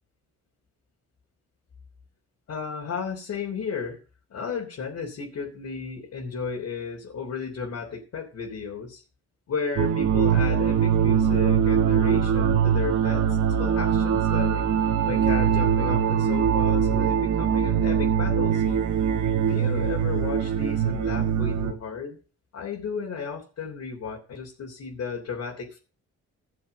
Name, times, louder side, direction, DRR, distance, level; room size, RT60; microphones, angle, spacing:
voice 1, 2.5-4.0 4.3-9.0 9.5-13.3 13.6-19.0 19.5-22.2 22.5-25.8, left 5 dB, 60° left, -3 dB, 3.5 m, -34 dB
sound 1, 9.8-21.7, right 8 dB, 80° right, 2.6 m, -22 dB
13.5 x 7.1 x 5.6 m, 0.36 s
cardioid pair, 90°, 30 cm